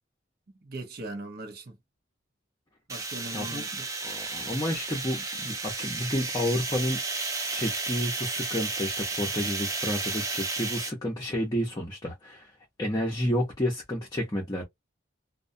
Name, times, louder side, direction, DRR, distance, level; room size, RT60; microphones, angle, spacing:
voice 1, 0.6-1.7 2.9-3.9, right 2 dB, 50° right, 0.7 m, -39 dB
sound 1, 2.9-10.9, right 3 dB, 15° right, 0.4 m, -33 dB
voice 2, 3.3-3.6 4.0-7.0 7.5-12.5 12.8-14.6, equal, 20° left, 0.7 m, -30 dB
2.3 x 2.1 x 2.5 m
head